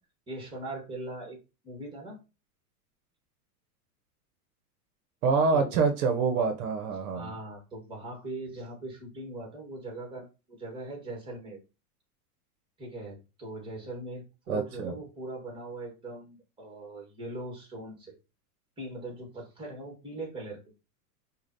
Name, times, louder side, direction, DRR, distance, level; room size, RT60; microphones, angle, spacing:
voice 1, 0.3-1.4 1.6-2.2 5.5-5.7 7.1-11.6 12.8-18.2 18.8-20.6, right 2 dB, 10° right, 1 dB, 1.5 m, -40 dB
voice 2, 5.2-7.3 14.5-14.9, right 4 dB, 70° right, 6 dB, 0.8 m, -26 dB
4.9 x 2.3 x 2.7 m, 0.30 s
supercardioid pair, 135°, 46 cm